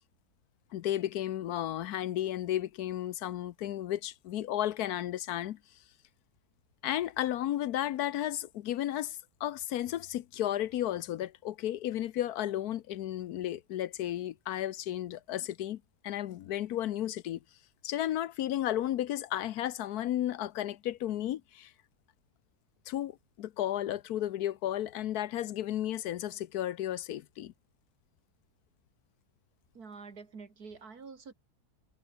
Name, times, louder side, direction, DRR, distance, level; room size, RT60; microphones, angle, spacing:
voice 1, 0.7-5.6 6.8-17.4 17.8-21.7 22.9-27.5, left 12 dB, 75° left, 1.2 m, -33 dB
voice 2, 29.7-31.3, right 5 dB, 70° right, 3.0 m, -47 dB
omnidirectional pair, 1.7 m